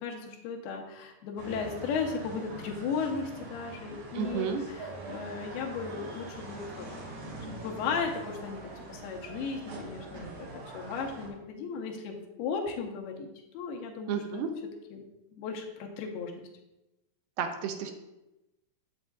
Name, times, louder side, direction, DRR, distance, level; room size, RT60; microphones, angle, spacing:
voice 1, 0.0-13.3 13.5-14.4 14.9-15.1 15.3-16.4, left 5 dB, 85° left, 1 dB, 2.8 m, -36 dB
sound 1, 1.4-11.3, right 2 dB, 60° right, 2.8 m, -43 dB
voice 2, 4.2-4.6 14.1-14.5 17.4-17.9, right 7 dB, 80° right, 5 dB, 2.3 m, -31 dB
7.8 x 7.2 x 2.4 m, 0.95 s
omnidirectional pair, 4.5 m